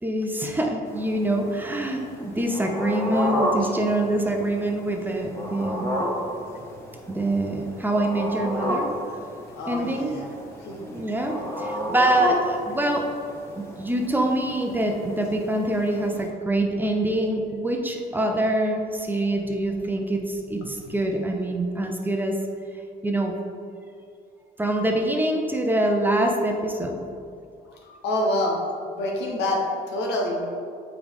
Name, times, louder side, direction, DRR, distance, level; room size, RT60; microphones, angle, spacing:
voice 1, 0.0-5.9 7.1-8.9 9.7-10.1 10.8-13.1 13.5-22.3 23.0-23.3 24.6-27.0, right 1 dB, 10° right, 2 dB, 0.7 m, -25 dB
sound 1, 0.9-16.3, equal, 15° left, 1.3 m, -32 dB
voice 2, 9.5-10.3 10.7-10.8 27.9-28.6 28.9-30.5, left 1 dB, 85° left, 0 dB, 1.2 m, -26 dB
7.1 x 4.7 x 3.5 m, 2.4 s
cardioid pair, 110°, 17 cm